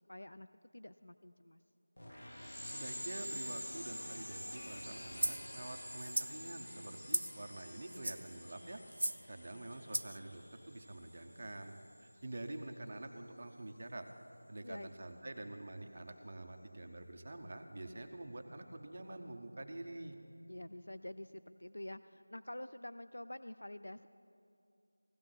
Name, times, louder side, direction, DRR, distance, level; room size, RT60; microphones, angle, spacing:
voice 1, 0.1-0.5 0.7-1.6 14.6-14.9 20.5-24.1, left 1 dB, 80° left, 12 dB, 0.3 m, -47 dB
sound 1, 2.0-12.1, equal, 55° left, 1.3 m, -48 dB
voice 2, 2.6-8.8 9.3-11.7 12.0-14.1 14.5-20.2, right 2 dB, 25° right, 5 dB, 0.5 m, -47 dB
sound 2, 5.2-5.4 6.0-6.3 7.1-7.4 7.9-8.3 8.9-9.2 9.9-10.2, right 1 dB, 85° right, 0.4 m, -36 dB
16.0 x 13.5 x 3.8 m, 2.6 s
figure-of-eight pair, 180°, 0 cm